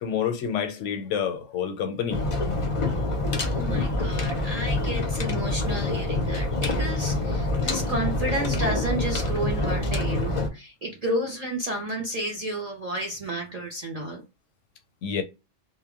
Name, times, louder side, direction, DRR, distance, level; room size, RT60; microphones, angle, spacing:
voice 1, 0.0-2.2 15.0-15.2, left 8 dB, 85° left, 0.9 m, -28 dB
sound 1, 2.1-10.5, left 2 dB, 50° left, 0.4 m, -26 dB
voice 2, 3.4-14.2, right 1 dB, 55° right, 0.4 m, -31 dB
2.1 x 2.1 x 3.5 m
omnidirectional pair, 1.2 m